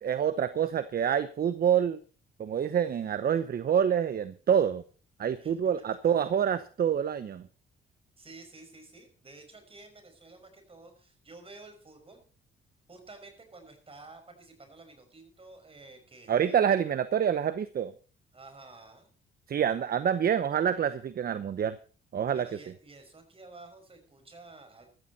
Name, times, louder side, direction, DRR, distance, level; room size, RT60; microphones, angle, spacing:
voice 1, 0.0-2.0 2.4-4.8 5.2-7.4 16.3-17.9 19.5-21.7 22.1-22.5, right 8 dB, 50° right, 13 dB, 0.9 m, -27 dB
voice 2, 8.2-12.2 12.9-16.7 18.3-19.1 22.3-24.9, right 3 dB, 30° right, 6 dB, 5.6 m, -51 dB
14.5 x 14.0 x 4.2 m, 0.38 s
cardioid pair, 90°, 20 cm